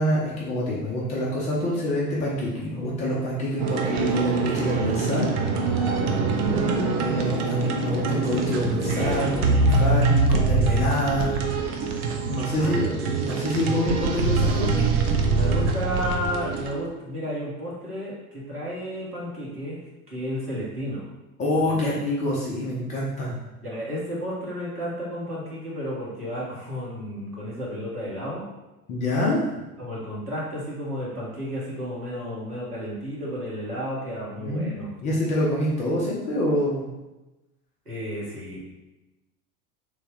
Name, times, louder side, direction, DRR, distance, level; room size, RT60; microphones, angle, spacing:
voice 1, 0.0-5.3 7.0-11.4 12.3-12.9 13.2-14.8 21.4-23.4 28.9-29.5 34.3-36.9, left 1 dB, 20° left, -5 dB, 0.3 m, -26 dB
sound 1, 3.6-16.7, right 3 dB, 45° right, 0.5 m, -24 dB
voice 2, 6.4-6.8 12.6-12.9 15.3-19.8 20.1-21.1 21.6-21.9 23.6-28.4 29.8-34.9 37.9-38.6, equal, 90° right, -6 dB, 1.0 m, -32 dB
3.2 x 2.1 x 3.3 m, 1.0 s
figure-of-eight pair, 80°, 45 cm